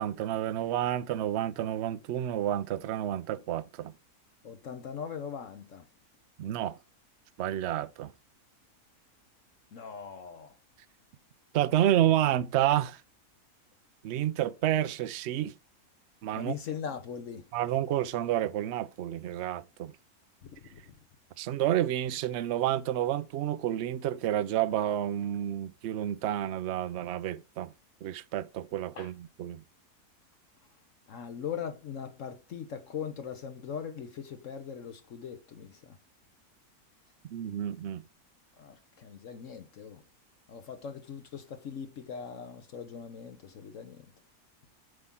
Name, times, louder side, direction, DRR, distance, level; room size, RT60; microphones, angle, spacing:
voice 1, 0.0-3.9 6.4-6.8 7.4-8.1 11.5-13.0 14.0-15.5 16.2-16.5 17.5-19.9 21.4-27.7 28.0-29.6 37.3-38.1, right 12 dB, 65° right, 0.7 m, -30 dB
voice 2, 4.4-5.9 9.7-10.6 16.3-17.5 20.4-20.9 28.9-29.1 31.1-36.0 38.6-40.0 40.5-44.1, left 7 dB, 60° left, 1.1 m, -40 dB
8.2 x 5.7 x 3.7 m
omnidirectional pair, 1.6 m